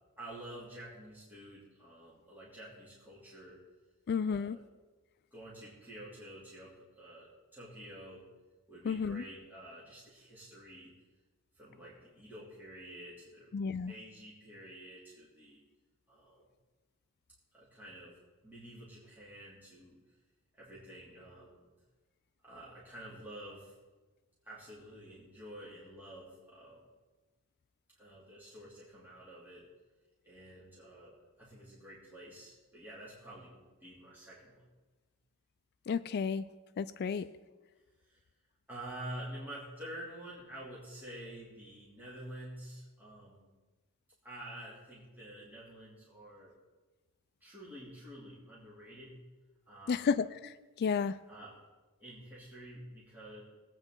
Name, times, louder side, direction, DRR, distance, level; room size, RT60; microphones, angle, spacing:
voice 1, 0.2-3.6 4.2-4.6 5.3-8.3 8.7-10.9 11.5-15.6 16.1-16.4 17.5-20.0 20.5-21.7 22.4-23.7 24.4-26.8 27.9-29.7 30.2-34.7 37.1-37.2 38.0-38.2 38.7-43.5 44.2-46.5 47.4-49.2 49.7-50.1 51.3-51.6 52.0-53.4, right 1 dB, 10° right, -9 dB, 2.7 m, -49 dB
voice 2, 4.1-4.6 8.8-9.2 13.5-13.9 35.9-36.5 36.8-37.3 49.9-51.2, left 6 dB, 50° left, 13 dB, 0.3 m, -32 dB
20.0 x 8.9 x 3.8 m, 1.3 s
head